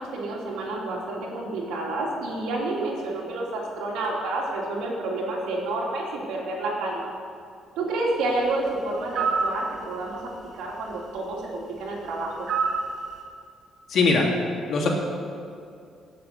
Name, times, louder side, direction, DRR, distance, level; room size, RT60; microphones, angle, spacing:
voice 1, 0.0-7.1 7.8-12.5, right 2 dB, 90° right, -2 dB, 3.2 m, -29 dB
sound 1, 9.1-9.5 12.5-12.9, right 5 dB, 65° right, 3.5 m, -24 dB
voice 2, 13.9-14.3 14.7-14.9, left 4 dB, 60° left, -1 dB, 3.0 m, -20 dB
18.0 x 7.5 x 6.9 m, 2.4 s
cardioid pair, 100°, 0 cm